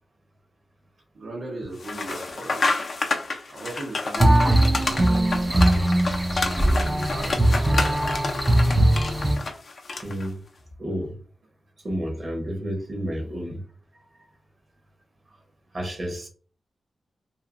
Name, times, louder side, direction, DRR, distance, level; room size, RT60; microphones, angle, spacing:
voice 1, 1.1-2.8 3.5-5.9 6.4-7.9, right 2 dB, 70° right, 0.8 m, -38 dB
sound 1, 1.8-10.3, left 3 dB, 55° left, 0.5 m, -29 dB
sound 2, 4.2-9.4, right 1 dB, 20° right, 0.4 m, -20 dB
voice 2, 10.0-10.4 10.8-11.1 11.8-13.6 15.7-16.3, equal, 40° right, 0.9 m, -30 dB
2.6 x 2.5 x 2.5 m
wide cardioid pair, 105°, 0 cm